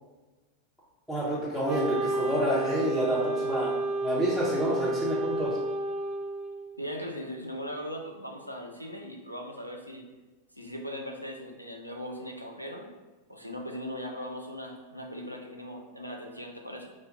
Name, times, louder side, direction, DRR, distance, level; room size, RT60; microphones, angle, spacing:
voice 1, 1.1-3.7 4.0-5.6, equal, ahead, -12 dB, 0.9 m, -28 dB
Wind instrument woodwind instrument, 1.7-6.8, right 2 dB, 30° right, 0.7 m, -31 dB
voice 2, 6.8-10.0 10.5-12.9 13.3-16.9, equal, 90° right, 1 dB, 0.4 m, -39 dB
4.9 x 2.2 x 2.6 m, 1.2 s
figure-of-eight pair, 90°, 0 cm